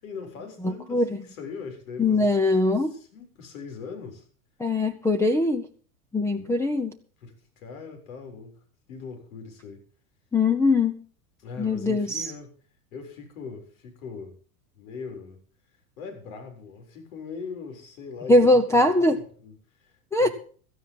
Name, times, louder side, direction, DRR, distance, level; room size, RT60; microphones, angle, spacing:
voice 1, 0.0-2.3 2.7-4.3 6.4-6.5 7.2-8.6 8.9-9.8 11.4-12.5 12.9-14.4 14.8-15.4 16.0-20.3, left 5 dB, 80° left, 7.2 m, -41 dB
voice 2, 2.0-2.9 4.6-5.7 6.1-7.0 10.3-11.0 11.6-12.2 18.3-19.2 20.1-20.3, left 2 dB, 5° left, 0.8 m, -21 dB
16.5 x 14.0 x 3.9 m
supercardioid pair, 145°, 41 cm